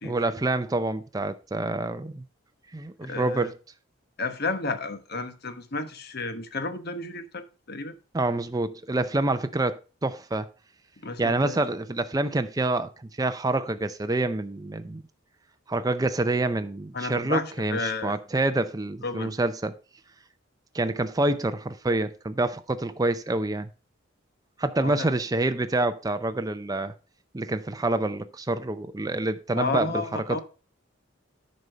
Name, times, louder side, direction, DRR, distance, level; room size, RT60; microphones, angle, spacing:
voice 1, 0.0-2.2 2.7-3.6 8.1-10.5 11.2-15.0 15.7-19.8 20.7-23.7 24.6-26.9 27.3-30.0 30.3-30.4, right 2 dB, 20° right, 0.5 m, -27 dB
voice 2, 3.0-3.5 4.2-8.0 11.0-11.6 16.9-18.2 19.0-19.3 24.8-25.1 29.5-30.4, left 3 dB, 50° left, 1.1 m, -32 dB
9.7 x 5.3 x 5.6 m
head